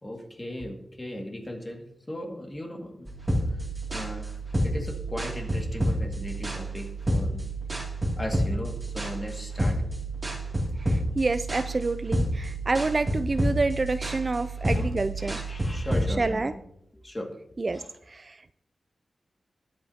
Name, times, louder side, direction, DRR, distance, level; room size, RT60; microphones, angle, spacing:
voice 1, 0.0-3.1 3.9-7.4 7.7-7.9 8.2-9.8 14.4-16.5 16.9-17.3 17.7-17.9, left 1 dB, 20° left, 1 dB, 2.0 m, -37 dB
sound 1, 3.1-16.1, right 1 dB, 15° right, 2.4 m, -29 dB
voice 2, 10.9-15.5 16.2-16.5 17.6-17.8 18.1-18.4, right 3 dB, 30° right, 11 dB, 0.3 m, -28 dB
21.5 x 8.8 x 2.8 m, 0.78 s
wide cardioid pair, 165°, 0 cm